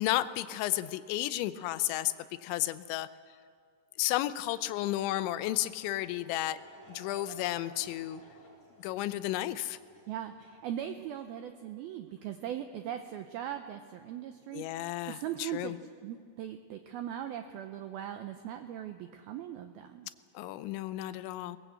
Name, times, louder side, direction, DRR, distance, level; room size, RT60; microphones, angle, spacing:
voice 1, 0.0-2.1 2.4-3.1 4.0-6.6 6.9-8.2 8.8-9.8 14.5-15.8 20.3-21.6, left 15 dB, 85° left, 13 dB, 3.0 m, -32 dB
Laughter / Crowd, 5.4-11.1, right 1 dB, 15° left, 4.8 m, -56 dB
voice 2, 10.1-20.1, right 10 dB, 90° right, 7 dB, 2.1 m, -40 dB
21.5 x 20.5 x 8.0 m, 2.1 s
omnidirectional pair, 5.3 m